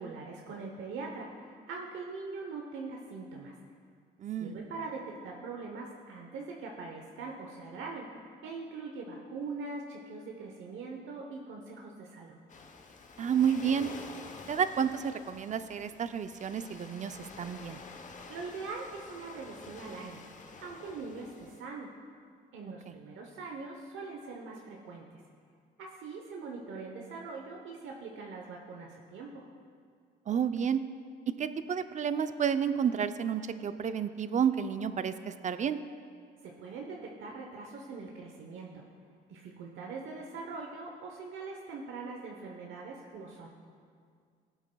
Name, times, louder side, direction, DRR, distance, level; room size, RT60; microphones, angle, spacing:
voice 1, 0.0-3.5 4.4-8.1 8.4-12.4 18.3-20.2 20.6-21.9 22.5-25.2 25.8-29.4 36.4-38.8 39.3-43.5, right 4 dB, 80° right, 0 dB, 0.9 m, -42 dB
voice 2, 4.2-4.6 13.2-13.9 14.5-17.8 22.9-23.0 30.3-30.8 31.4-35.8, right 7 dB, 40° right, 11 dB, 0.5 m, -30 dB
Waves surf, 12.5-21.6, left 4 dB, 40° left, 0.8 m, -49 dB
17.0 x 8.1 x 2.3 m, 2.2 s
cardioid pair, 90°, 20 cm